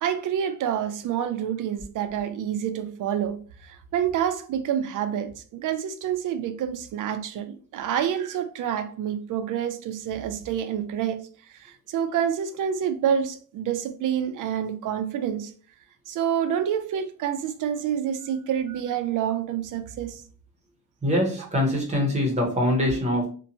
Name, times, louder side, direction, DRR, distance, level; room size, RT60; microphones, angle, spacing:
voice 1, 0.0-15.5 16.1-20.2, right 9 dB, 60° right, 0.5 m, -28 dB
voice 2, 21.0-23.3, left 1 dB, 20° right, 0.7 m, -23 dB
2.6 x 2.2 x 2.7 m
cardioid pair, 165°, 35 cm